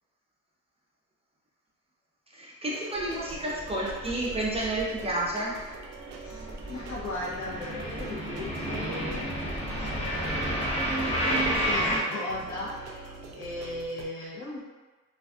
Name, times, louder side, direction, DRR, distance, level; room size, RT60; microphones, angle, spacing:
voice 1, 2.3-5.5, right 1 dB, 20° right, -4 dB, 0.5 m, -30 dB
sound 1, 2.6-14.0, right 4 dB, 75° right, 0.5 m, -45 dB
sound 2, 3.0-5.3 5.6-12.0, equal, 20° left, 0.7 m, -31 dB
voice 2, 6.2-14.7, left 2 dB, 65° left, -5 dB, 0.9 m, -38 dB
2.5 x 2.3 x 2.3 m, 1.3 s
cardioid pair, 85°, 31 cm